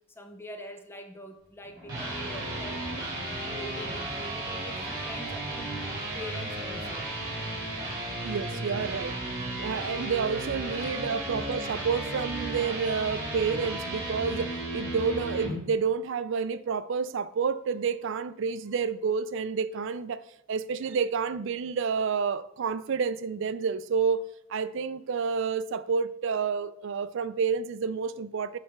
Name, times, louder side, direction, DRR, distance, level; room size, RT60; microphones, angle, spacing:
voice 1, 0.2-2.8 3.1-7.1 10.8-10.9, equal, 10° left, 0.6 m, -44 dB
sound 1, 1.6-15.5, right 1 dB, 20° right, 2.7 m, -34 dB
voice 2, 8.2-9.2 9.5-20.2 20.5-28.6, right 5 dB, 60° right, 0.4 m, -29 dB
8.4 x 3.3 x 5.8 m
head